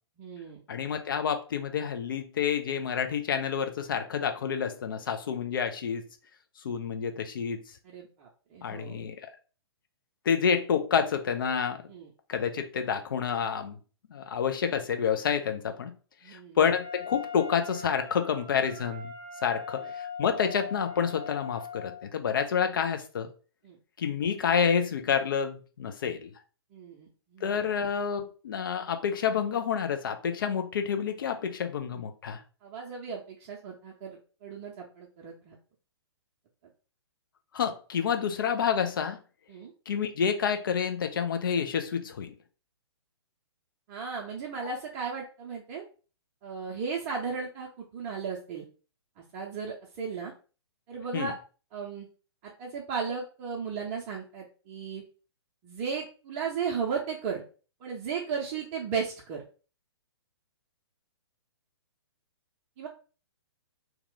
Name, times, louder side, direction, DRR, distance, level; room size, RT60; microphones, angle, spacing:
voice 1, 0.2-0.6 7.8-9.0 11.9-12.1 16.2-16.6 19.8-19.9 23.6-23.8 26.7-27.6 31.9-32.0 32.6-35.6 39.5-39.7 43.9-45.8 46.4-48.6 49.3-50.3 50.9-51.3 51.7-52.1 52.4-55.0 55.6-57.4 57.8-59.4 62.8-62.9, right 5 dB, 30° right, 0.7 m, -35 dB
voice 2, 0.7-6.0 6.6-7.6 8.6-9.2 10.3-11.8 12.3-13.8 14.1-16.0 16.3-19.1 19.4-23.3 24.0-26.3 27.4-32.4 37.5-39.2 39.9-42.3 51.1-51.3, left 7 dB, 50° left, 0.5 m, -28 dB
Wind instrument woodwind instrument, 16.8-22.0, left 4 dB, 25° left, 1.4 m, -41 dB
2.9 x 2.3 x 3.7 m
figure-of-eight pair, 120°, 14 cm